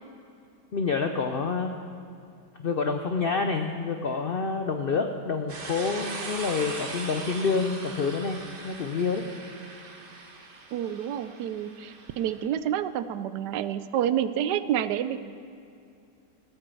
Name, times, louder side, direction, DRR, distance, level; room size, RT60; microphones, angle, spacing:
voice 1, 0.7-1.7 2.6-8.4 8.6-9.3, left 4 dB, 75° left, 6 dB, 0.5 m, -28 dB
sound 1, 5.5-12.5, right 3 dB, 35° right, 1.2 m, -40 dB
voice 2, 10.7-15.4, right 10 dB, 80° right, 13 dB, 1.2 m, -29 dB
15.0 x 9.2 x 6.9 m, 2.5 s
omnidirectional pair, 1.8 m